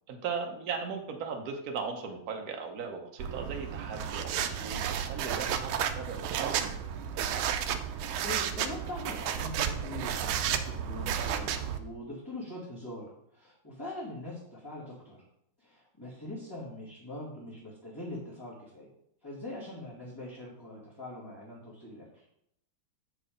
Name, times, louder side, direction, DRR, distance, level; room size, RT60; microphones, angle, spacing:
voice 1, 0.1-6.6, right 5 dB, 55° right, 3 dB, 1.3 m, -38 dB
sound 1, 3.2-11.8, right 9 dB, 85° right, 1.4 m, -32 dB
voice 2, 7.8-15.2 15.6-18.9 19.2-22.2, left 1 dB, 10° left, -8 dB, 2.0 m, -42 dB
7.7 x 4.5 x 5.1 m, 0.74 s
omnidirectional pair, 2.2 m